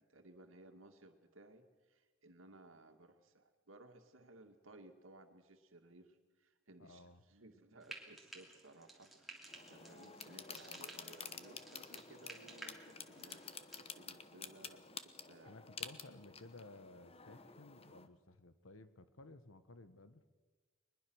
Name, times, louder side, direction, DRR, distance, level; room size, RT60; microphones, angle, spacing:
voice 1, 0.0-15.7, right 2 dB, 80° right, 5 dB, 2.2 m, -60 dB
voice 2, 6.8-7.2 15.5-20.2, left 2 dB, 80° left, 12 dB, 1.3 m, -56 dB
Frying (food), 7.8-13.8, right 2 dB, ahead, 2.9 m, -55 dB
sound 1, 9.5-18.1, left 6 dB, 30° left, 1.0 m, -51 dB
22.5 x 21.0 x 6.4 m, 1.3 s
head